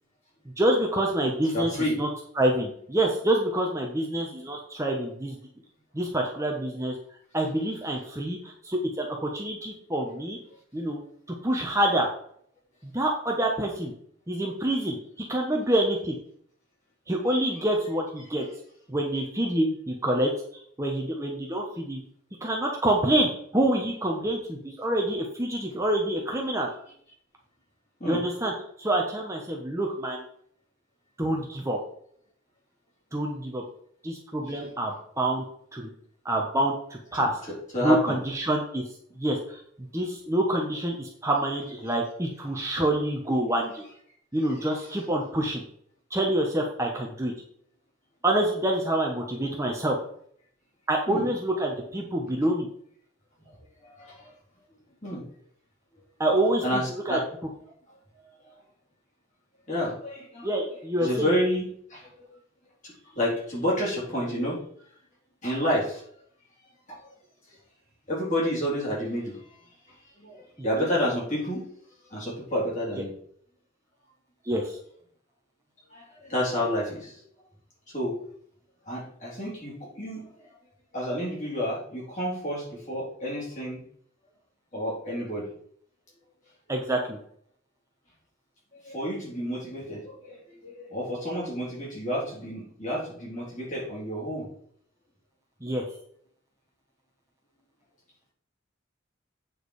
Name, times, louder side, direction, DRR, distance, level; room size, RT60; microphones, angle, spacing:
voice 1, 0.6-1.7 2.0-2.1 2.4-5.4 5.9-7.0 7.3-10.4 10.7-11.0 11.4-12.1 12.8-13.9 14.3-16.2 17.1-18.5 18.9-22.0 22.4-26.7 28.1-28.5 28.8-30.2 31.2-31.8 33.1-33.6 34.0-35.4 35.7-35.9 36.2-37.4 37.8-38.8 39.2-39.6 39.9-43.8 44.3-45.6 46.1-47.3 48.2-50.0 50.9-52.7 56.2-57.2 60.4-61.3 70.8-70.9 74.4-74.8 86.7-87.2 95.6-95.8, right 1 dB, 15° right, 0 dB, 1.0 m, -27 dB
voice 2, 1.5-2.0 28.0-28.2 34.5-34.6 37.1-37.3 37.7-38.2 51.1-51.3 53.4-53.5 53.8-54.3 55.0-55.2 56.6-57.2 59.7-60.5 61.0-62.4 62.8-64.6 65.4-66.0 66.9-67.0 68.1-69.4 70.2-71.6 72.1-73.1 75.9-77.2 77.9-78.1 78.9-80.2 80.9-83.8 84.7-85.5 88.8-94.5, equal, 40° left, -5 dB, 3.8 m, -30 dB
8.4 x 4.8 x 4.8 m, 0.63 s
head